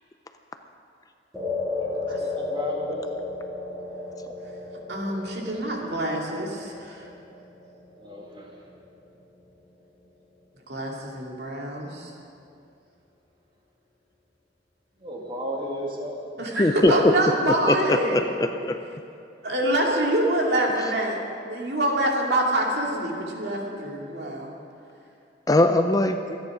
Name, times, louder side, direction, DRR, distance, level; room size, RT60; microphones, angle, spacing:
sound 1, 1.3-9.8, left 3 dB, ahead, 2.4 m, -34 dB
voice 1, 2.0-3.1 8.0-8.5 15.0-16.2, equal, 30° right, -2 dB, 2.4 m, -33 dB
voice 2, 4.9-7.0 10.7-12.1 16.4-18.3 19.4-21.2 21.5-24.5, right 1 dB, 65° right, -1 dB, 2.4 m, -25 dB
voice 3, 16.6-16.9 17.7-18.8 25.5-26.2, left 1 dB, 20° left, 7 dB, 0.5 m, -21 dB
25.0 x 9.7 x 5.0 m, 2.6 s
head